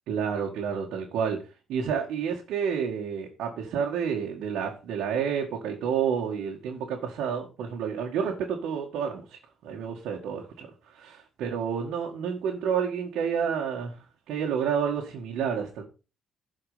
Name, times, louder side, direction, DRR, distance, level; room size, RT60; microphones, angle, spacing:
voice 1, 0.1-1.4 1.7-10.7 10.9-13.9 14.3-15.8, right 7 dB, 85° right, 2.0 m, -29 dB
12.0 x 5.2 x 5.1 m
cardioid pair, 90°, 0 cm